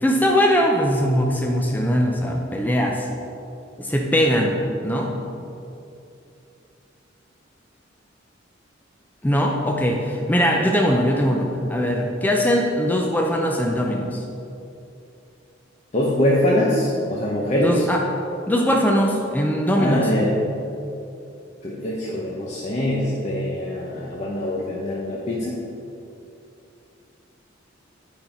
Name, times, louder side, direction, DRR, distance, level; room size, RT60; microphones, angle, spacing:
voice 1, 0.0-3.1 3.8-4.6 4.8-5.1 9.2-14.2 17.6-18.0 18.5-20.1, equal, 10° left, 0 dB, 0.5 m, -21 dB
voice 2, 15.9-17.8 19.8-20.3 21.6-25.5, left 1 dB, 35° left, -4 dB, 0.9 m, -23 dB
9.4 x 5.5 x 4.4 m, 2.7 s
head